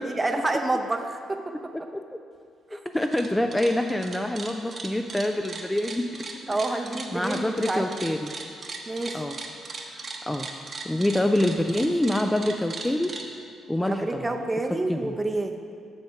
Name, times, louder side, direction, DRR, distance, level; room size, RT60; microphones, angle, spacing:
voice 1, 0.0-1.4 2.7-2.8 6.5-7.9 8.9-9.2 13.8-15.6, right 2 dB, 20° right, 5 dB, 0.7 m, -28 dB
voice 2, 2.7-6.6 7.1-8.3 9.1-9.4 9.9-10.5 10.8-13.1 13.7-14.4 14.9-15.1, left 1 dB, 10° left, 5 dB, 0.4 m, -26 dB
sound 1, 2.9-3.3 3.5-13.2, right 4 dB, 45° right, 0.9 m, -37 dB
7.1 x 6.5 x 4.7 m, 2.3 s
cardioid pair, 90°, 0 cm